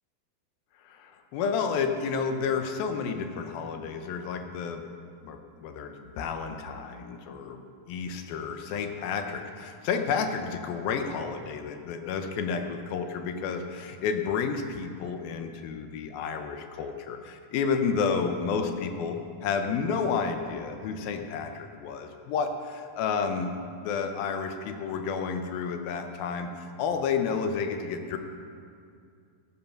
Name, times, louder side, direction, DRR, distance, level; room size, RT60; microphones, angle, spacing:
voice 1, 0.9-4.8 5.2-23.5 23.8-28.2, left 6 dB, 75° left, 6 dB, 2.5 m, -31 dB
14.5 x 9.5 x 5.9 m, 2.3 s
omnidirectional pair, 4.6 m